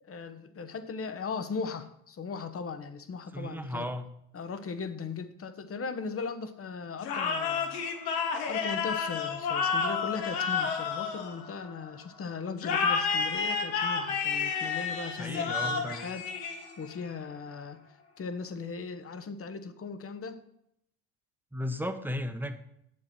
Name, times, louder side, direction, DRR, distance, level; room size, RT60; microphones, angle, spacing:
voice 1, 0.0-3.9 4.3-7.8 8.0-16.3 16.8-17.8 18.2-20.4, left 5 dB, 35° left, 11 dB, 1.1 m, -38 dB
voice 2, 3.3-4.1 15.2-16.1 21.5-22.5, equal, 5° right, 6 dB, 1.1 m, -35 dB
sound 1, 7.0-11.9 12.6-17.0, left 5 dB, 75° left, 1.6 m, -30 dB
9.6 x 7.1 x 4.4 m, 0.75 s
supercardioid pair, 75°, 40 cm